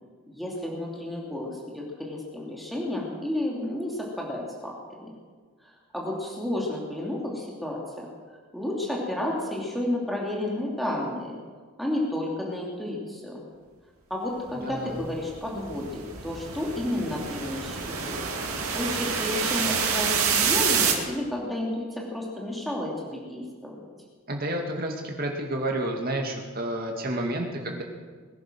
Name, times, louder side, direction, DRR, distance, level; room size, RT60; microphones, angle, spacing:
voice 1, 0.3-5.1 5.9-11.4 11.8-13.4 14.1-18.1 18.7-23.8, left 1 dB, ahead, -3 dB, 2.7 m, -31 dB
voice 2, 14.7-15.0 24.3-27.8, right 1 dB, 45° right, 2 dB, 2.4 m, -30 dB
sound 1, 14.9-20.9, right 6 dB, 85° right, 2.5 m, -27 dB
21.5 x 10.5 x 6.3 m, 1.5 s
head